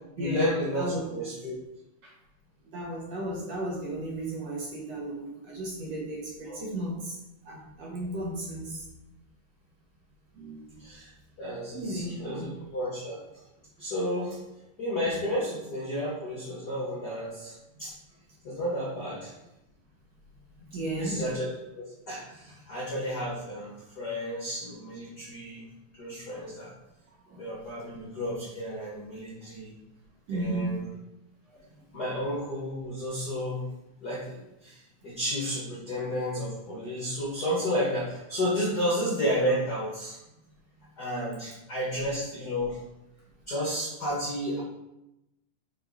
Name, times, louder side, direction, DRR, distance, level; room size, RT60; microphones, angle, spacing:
voice 1, 0.2-1.5 6.5-6.6 10.8-11.1 11.4-13.2 13.8-14.4 14.8-17.9 18.4-19.4 21.0-25.7 26.0-26.7 27.3-29.7 30.3-30.8 31.9-33.7 34.0-40.2 41.0-42.8 43.5-44.6, equal, 60° left, -5 dB, 1.0 m, -32 dB
voice 2, 0.7-1.3 2.0-2.1 2.7-7.2 7.5-8.8 10.3-10.8 11.7-12.5 20.7-21.2 27.3-27.4 30.3-30.9 31.5-31.6, right 1 dB, 60° right, -4 dB, 2.1 m, -34 dB
5.5 x 5.5 x 4.1 m, 0.92 s
omnidirectional pair, 3.9 m